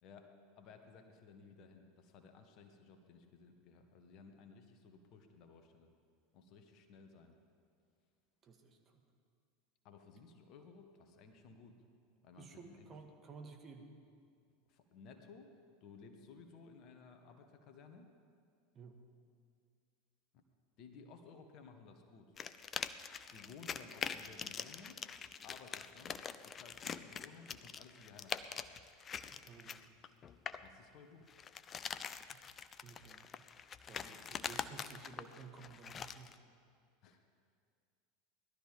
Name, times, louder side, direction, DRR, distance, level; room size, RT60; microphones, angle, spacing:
voice 1, 0.0-5.9 6.3-7.4 9.8-11.8 12.2-13.0 14.7-15.5 15.8-18.1 20.3-20.4 20.8-22.3 23.3-25.0 25.4-28.6 30.6-31.3 33.9-34.3 37.0-37.2, left 4 dB, 50° left, 5 dB, 1.6 m, -57 dB
voice 2, 8.4-9.0 12.4-13.9 18.8-19.0 29.3-29.8 32.8-33.2 33.9-36.4, right 4 dB, 30° right, 3 dB, 1.8 m, -54 dB
sound 1, 22.4-30.7 31.3-36.4, left 7 dB, 30° left, 0.6 m, -44 dB
18.5 x 12.5 x 5.3 m, 2.2 s
figure-of-eight pair, 80°, 0 cm